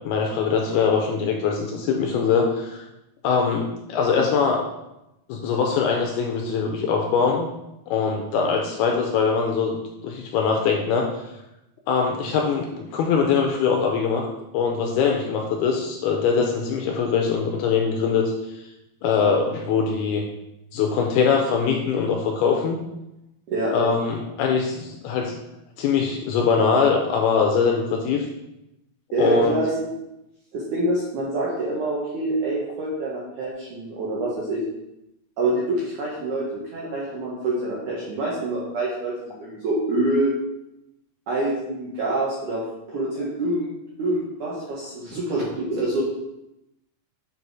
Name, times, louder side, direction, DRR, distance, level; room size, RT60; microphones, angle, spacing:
voice 1, 0.0-2.8 3.2-4.6 5.3-7.5 7.9-9.8 10.0-11.1 11.9-12.7 12.9-14.3 14.5-18.3 19.0-20.3 20.7-22.8 23.7-25.3 25.8-28.3 29.2-29.6, left 5 dB, 80° left, 1 dB, 2.3 m, -22 dB
voice 2, 29.1-29.9 30.5-34.6 35.4-40.3 41.3-42.6 42.9-43.7 44.0-46.0, right 2 dB, 70° right, -5 dB, 1.9 m, -26 dB
7.6 x 4.1 x 4.6 m, 0.89 s
omnidirectional pair, 5.1 m